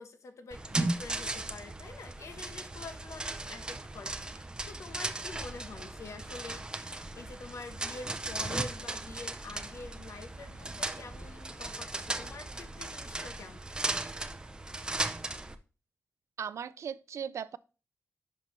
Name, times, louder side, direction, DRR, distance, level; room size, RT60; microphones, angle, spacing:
voice 1, 0.0-13.7, left 3 dB, 75° left, 1.1 m, -47 dB
sound 1, 0.5-15.5, right 2 dB, 15° right, 0.5 m, -37 dB
voice 2, 16.4-17.6, right 7 dB, 70° right, 0.4 m, -38 dB
10.5 x 5.5 x 3.1 m
wide cardioid pair, 155°, 5 cm